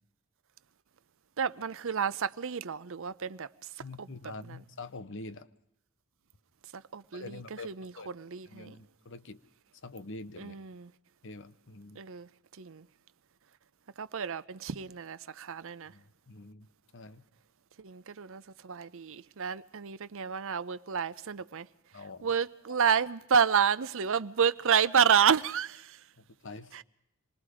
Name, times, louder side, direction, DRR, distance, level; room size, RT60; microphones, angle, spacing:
voice 1, 1.4-3.5 4.0-4.1 4.5-4.6 6.7-7.4 7.6-8.8 10.4-10.9 12.0-12.3 12.6-12.9 14.0-15.9 17.8-21.7 22.2-26.0 26.7-26.8, right 7 dB, 60° right, 0.7 m, -29 dB
voice 2, 3.8-5.5 7.1-7.7 8.0-8.1 8.5-9.4 9.8-10.5 11.2-12.0 15.9-16.7 16.9-17.2 21.9-22.3 26.2-26.8, left 3 dB, 60° left, 1.0 m, -45 dB
26.5 x 20.5 x 4.9 m
head